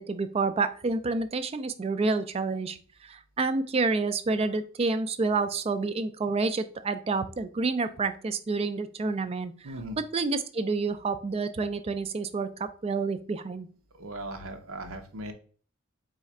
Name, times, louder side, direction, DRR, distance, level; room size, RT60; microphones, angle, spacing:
voice 1, 0.0-2.8 3.0-9.5 10.1-13.7, right 3 dB, 30° right, 11 dB, 0.3 m, -29 dB
voice 2, 9.6-10.0 13.9-15.3, right 1 dB, 85° right, 6 dB, 0.8 m, -38 dB
4.2 x 2.4 x 4.1 m, 0.42 s
head